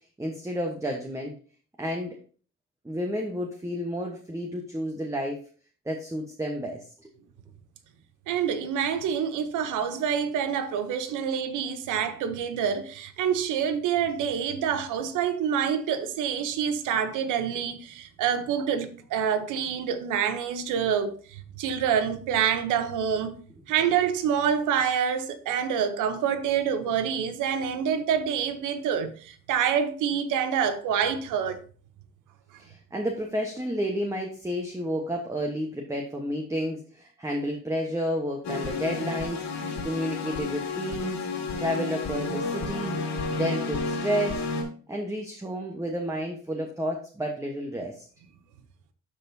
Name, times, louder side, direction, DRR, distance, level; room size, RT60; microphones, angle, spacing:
voice 1, 0.2-1.4 1.8-2.2 2.8-5.4 5.8-7.1 32.6-41.2 41.6-43.0 43.3-44.4 44.9-48.1, equal, 10° right, 1.1 m, -31 dB
voice 2, 8.3-23.4 23.7-31.6, right 8 dB, 90° right, 0.9 m, -27 dB
sound 1, 38.4-44.6, left 4 dB, 65° left, 2.5 m, -31 dB
12.0 x 4.2 x 2.7 m
cardioid pair, 90°, 30 cm